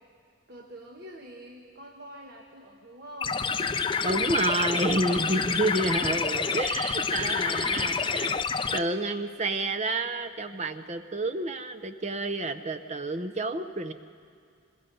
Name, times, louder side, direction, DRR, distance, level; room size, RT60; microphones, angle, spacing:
voice 1, 0.5-3.5 4.0-5.5, right 1 dB, 50° right, 1 dB, 1.3 m, -46 dB
sound 1, 3.2-8.8, left 5 dB, 25° left, 0.4 m, -28 dB
voice 2, 4.0-8.4 8.7-13.9, right 2 dB, 30° right, 9 dB, 0.7 m, -29 dB
25.0 x 21.5 x 5.4 m, 2.2 s
head